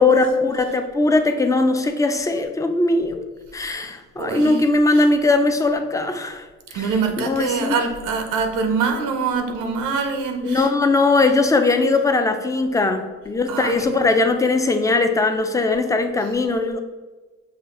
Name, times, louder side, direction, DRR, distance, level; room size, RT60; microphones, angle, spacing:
voice 1, 0.0-3.2 3.5-6.5 6.7-6.9 7.2-7.8 10.4-16.8, left 3 dB, 10° left, 7 dB, 0.4 m, -19 dB
voice 2, 4.2-4.7 4.9-5.1 6.7-10.7 13.5-14.1, right 5 dB, 85° right, 5 dB, 0.7 m, -24 dB
5.6 x 2.5 x 3.7 m, 1.3 s
cardioid pair, 90°, 30 cm